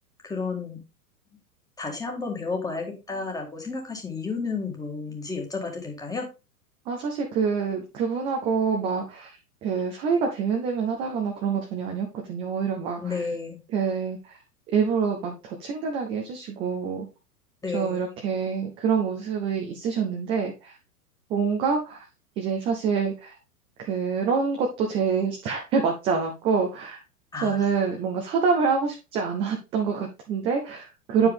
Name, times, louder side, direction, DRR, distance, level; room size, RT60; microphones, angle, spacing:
voice 1, 0.2-0.8 1.8-6.3 13.0-13.6 17.6-18.1 27.3-27.6, left 4 dB, 10° left, 2 dB, 1.6 m, -32 dB
voice 2, 6.9-9.4 9.6-13.3 13.7-14.4 14.7-17.1 17.7-20.8 21.3-22.1 22.4-23.4 23.8-27.0 27.4-31.3, right 5 dB, 15° right, 2 dB, 0.4 m, -26 dB
8.5 x 4.9 x 3.4 m, 0.28 s
figure-of-eight pair, 105°, 46 cm